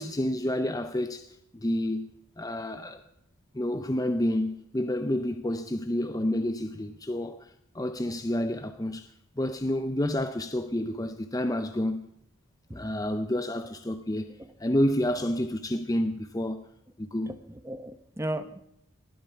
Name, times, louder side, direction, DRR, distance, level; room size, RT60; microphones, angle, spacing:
voice 1, 0.0-2.1 2.4-3.0 3.5-12.1 12.7-14.3 14.6-16.6 17.0-17.4, left 1 dB, 15° left, 0.6 m, -29 dB
voice 2, 17.3-18.6, right 1 dB, 15° right, 0.9 m, -36 dB
19.5 x 12.5 x 5.8 m
head